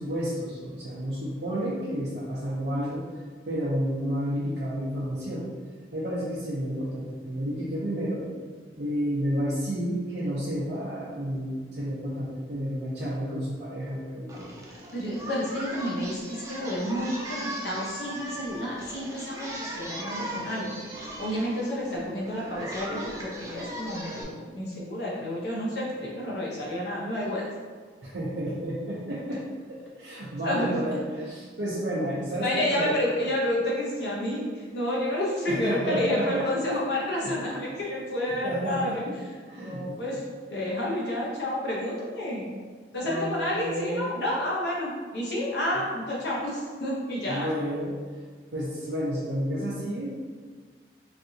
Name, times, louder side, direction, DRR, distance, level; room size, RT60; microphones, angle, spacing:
voice 1, 0.0-5.5 5.9-8.2 8.7-14.5 28.0-32.9 35.5-36.8 37.2-37.3 38.4-39.1 39.5-40.0 43.0-44.2 47.3-47.9 48.5-50.1, equal, 75° right, -9 dB, 0.6 m, -31 dB
Singing, 14.3-24.2, right 1 dB, 20° right, 0.4 m, -38 dB
voice 2, 14.9-20.8 21.2-27.4 29.3-29.4 30.4-30.7 32.3-39.1 39.6-40.2 40.5-42.6 42.9-47.5, left 1 dB, 70° left, -5 dB, 0.7 m, -30 dB
3.3 x 2.6 x 2.6 m, 1.5 s
head